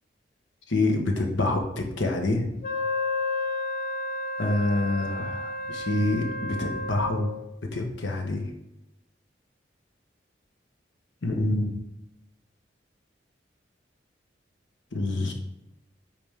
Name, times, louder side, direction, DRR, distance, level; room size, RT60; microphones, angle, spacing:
voice 1, 0.7-2.5 4.4-7.3 7.7-8.5 11.2-11.8 14.9-15.3, left 2 dB, 75° left, 2 dB, 1.1 m, -26 dB
Wind instrument woodwind instrument, 2.6-7.4, left 2 dB, 45° left, 0.7 m, -31 dB
8.7 x 3.4 x 3.5 m, 0.90 s
head